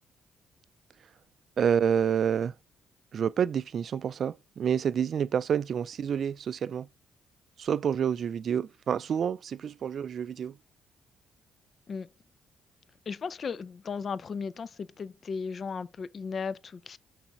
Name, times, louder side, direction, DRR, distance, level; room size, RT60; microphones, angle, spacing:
voice 1, 1.6-2.5 3.1-6.9 7.6-10.6, right 8 dB, 55° right, 0.4 m, -28 dB
voice 2, 13.1-17.0, left 5 dB, 45° left, 0.4 m, -36 dB
6.1 x 4.1 x 4.6 m
cardioid pair, 90°, 0 cm